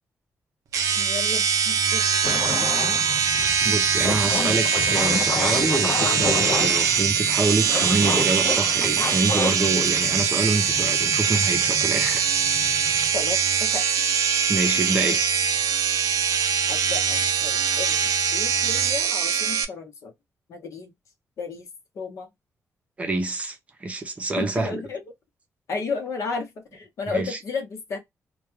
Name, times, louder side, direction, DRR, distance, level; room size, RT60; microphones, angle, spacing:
sound 1, 0.7-19.7, right 7 dB, 80° right, 0.5 m, -22 dB
voice 1, 1.0-2.7 13.1-13.8 16.7-20.1 20.5-20.9 21.4-21.7 21.9-22.3 24.4-25.0 25.7-28.0, left 4 dB, 65° left, 0.8 m, -33 dB
sound 2, 2.2-13.3, left 4 dB, 40° left, 0.4 m, -31 dB
voice 2, 3.6-12.3 14.5-15.2 23.0-24.8 27.1-27.4, right 2 dB, 25° right, 0.6 m, -26 dB
2.2 x 2.2 x 3.0 m
wide cardioid pair, 165°, 6 cm